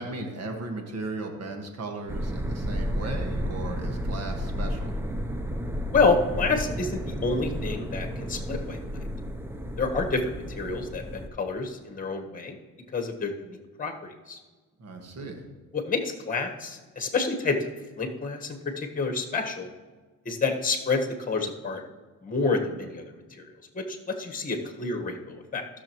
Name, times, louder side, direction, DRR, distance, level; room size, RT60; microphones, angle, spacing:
voice 1, 0.0-4.9 14.8-15.4, right 2 dB, 60° right, 4 dB, 1.6 m, -36 dB
sound 1, 2.1-11.3, equal, 10° right, 0.7 m, -32 dB
voice 2, 5.9-8.8 9.8-12.6 12.9-14.4 15.7-17.7 18.0-19.7 20.2-21.8 22.2-23.0 23.4-23.5 23.7-25.6, left 4 dB, 25° left, 4 dB, 1.4 m, -28 dB
14.5 x 6.5 x 3.0 m, 1.3 s
cardioid pair, 90°, 30 cm